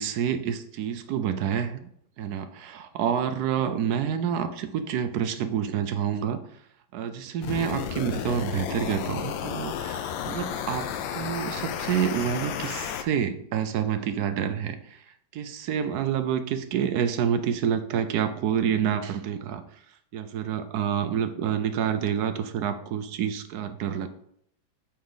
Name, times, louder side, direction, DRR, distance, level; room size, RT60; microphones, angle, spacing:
voice 1, 0.0-1.9 2.2-6.4 6.9-15.0 15.3-19.6 20.1-24.1, right 8 dB, 70° right, 9 dB, 1.0 m, -28 dB
sound 1, 7.4-13.0, left 9 dB, 80° left, 1.3 m, -32 dB
8.5 x 4.3 x 3.8 m, 0.70 s
omnidirectional pair, 2.1 m